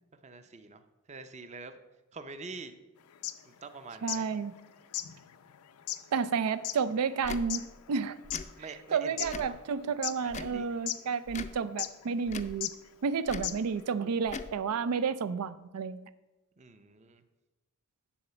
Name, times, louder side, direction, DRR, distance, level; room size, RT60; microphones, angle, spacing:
voice 1, 0.2-0.8 1.1-1.7 2.1-2.7 3.4-4.2 8.6-9.6 10.2-10.8 16.6-17.2, right 3 dB, 30° right, 9 dB, 0.6 m, -45 dB
sound 1, 3.1-4.3 4.6-4.7 4.9-8.5 8.9-9.7 10.0-10.5 10.9-11.0 11.8-12.0 12.6-12.7 13.1-13.2 13.4-13.8, left 14 dB, 85° left, 0.5 m, -36 dB
voice 2, 4.0-4.5 6.1-8.2 8.6-12.7 13.0-16.1, right 6 dB, 90° right, 14 dB, 0.4 m, -31 dB
Tick / Tick-tock, 7.2-7.4 8.2-8.5 9.2-9.6 10.3-10.6 11.3-11.6 12.3-12.6 13.3-13.5 14.2-14.5, left 4 dB, 30° left, 0.4 m, -40 dB
10.0 x 4.1 x 6.7 m, 1.0 s
head